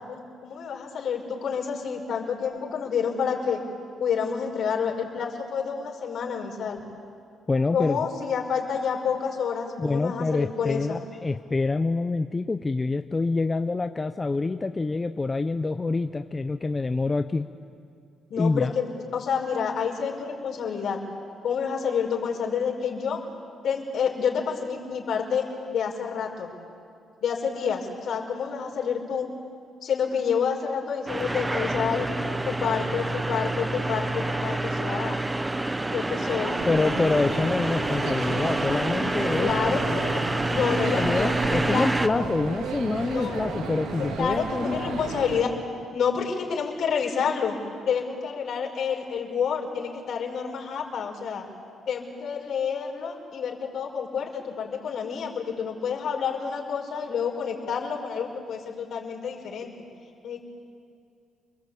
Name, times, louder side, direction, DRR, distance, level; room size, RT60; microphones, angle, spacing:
voice 1, 0.1-3.6 4.0-6.8 7.7-11.0 18.3-21.0 21.4-23.3 23.6-26.5 27.2-29.3 29.8-32.1 32.5-35.2 35.9-36.6 39.4-40.2 40.5-41.3 41.6-42.3 43.1-43.4 44.0-45.6 45.9-47.6 47.9-51.5 51.9-59.7 60.2-60.4, left 6 dB, 65° left, 0 dB, 5.6 m, -29 dB
voice 2, 7.5-8.0 9.8-17.5 18.4-18.7 36.6-40.0 40.9-45.0, left 3 dB, 25° left, 8 dB, 0.8 m, -26 dB
sound 1, 31.1-42.1, right 2 dB, 15° right, 1.1 m, -27 dB
sound 2, 36.6-45.4, right 4 dB, 80° right, 2.9 m, -34 dB
30.0 x 22.5 x 8.6 m, 2.4 s
cardioid pair, 90°, 0 cm